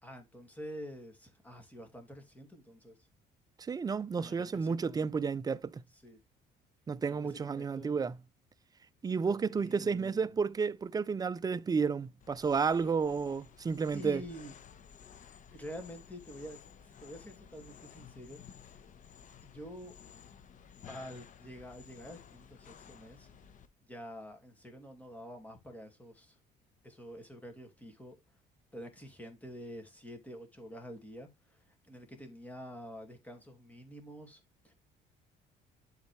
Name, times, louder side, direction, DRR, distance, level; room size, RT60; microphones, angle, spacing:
voice 1, 0.0-3.0 4.2-5.1 5.9-6.2 7.1-8.1 9.3-10.4 13.9-14.6 15.5-16.6 17.0-18.4 18.6-18.8 19.4-20.0 20.9-23.3 23.8-26.4 26.8-28.2 28.7-34.7, equal, 10° left, 2.6 m, -48 dB
voice 2, 3.6-5.8 6.9-8.2 9.0-14.2, right 5 dB, 20° right, 0.5 m, -31 dB
sound 1, 12.2-23.7, left 7 dB, 50° left, 1.1 m, -54 dB
11.5 x 4.1 x 3.2 m
cardioid pair, 110°, 17 cm